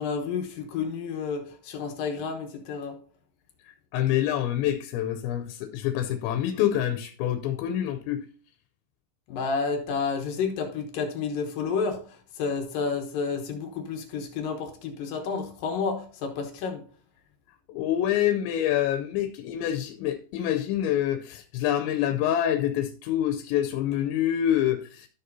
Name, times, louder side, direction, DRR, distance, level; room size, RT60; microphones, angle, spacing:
voice 1, 0.0-3.0 9.3-12.0 12.4-16.8, left 5 dB, 65° left, 2.4 m, -30 dB
voice 2, 3.9-8.3 17.7-25.1, left 11 dB, 90° left, 2.9 m, -26 dB
13.0 x 6.5 x 2.7 m
omnidirectional pair, 5.1 m